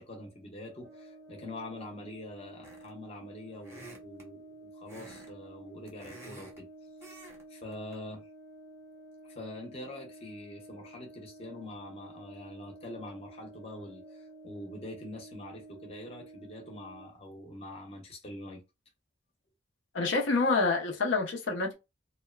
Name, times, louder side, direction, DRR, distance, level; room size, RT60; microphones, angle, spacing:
voice 1, 0.0-6.7 7.5-8.3 9.2-18.6, left 1 dB, 30° left, 0.6 m, -44 dB
Brass instrument, 0.8-17.2, right 2 dB, 55° right, 0.5 m, -51 dB
sound 1, 2.6-3.0 3.6-4.3 4.9-5.3 5.6-6.6 7.0-7.4 7.7-7.9, right 2 dB, 15° right, 0.7 m, -50 dB
voice 2, 19.9-21.7, left 3 dB, 70° left, 0.6 m, -27 dB
2.8 x 2.1 x 2.2 m
head